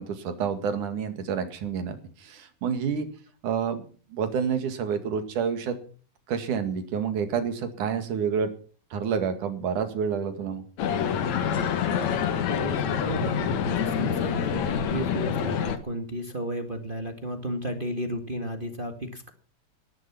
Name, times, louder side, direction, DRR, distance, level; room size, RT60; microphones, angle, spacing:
voice 1, 0.0-3.1 3.4-3.8 4.1-5.7 6.3-8.5 8.9-10.6, right 7 dB, 65° right, 9 dB, 3.4 m, -28 dB
sound 1, 10.8-15.8, left 7 dB, 60° left, 2.5 m, -26 dB
voice 2, 12.4-19.3, right 1 dB, 25° right, 5 dB, 1.2 m, -33 dB
19.0 x 11.0 x 6.0 m, 0.41 s
omnidirectional pair, 3.9 m